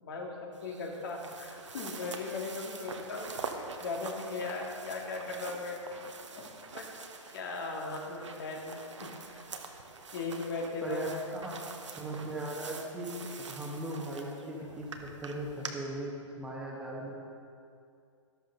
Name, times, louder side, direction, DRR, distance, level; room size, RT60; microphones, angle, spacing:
voice 1, 0.0-0.3 0.6-6.0 6.4-6.9 7.3-9.4 10.1-11.1, left 3 dB, 45° left, 0 dB, 2.1 m, -38 dB
sound 1, 0.5-15.7, right 4 dB, 65° right, 1.3 m, -45 dB
voice 2, 10.8-14.9 15.2-16.1 16.4-17.2, right 1 dB, 5° right, -3 dB, 1.5 m, -38 dB
13.0 x 12.5 x 3.9 m, 2.5 s
figure-of-eight pair, 115°, 16 cm